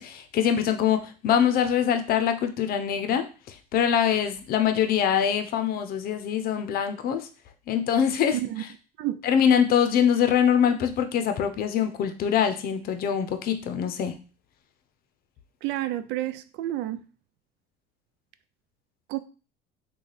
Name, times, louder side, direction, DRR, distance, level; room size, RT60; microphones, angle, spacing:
voice 1, 0.0-7.3 7.7-8.4 9.2-14.2, left 8 dB, 50° left, 0.6 m, -24 dB
voice 2, 8.3-8.6 9.0-9.2 15.6-17.0 19.1-19.2, right 14 dB, 60° right, 0.4 m, -29 dB
3.2 x 2.3 x 3.9 m
supercardioid pair, 90°, 19 cm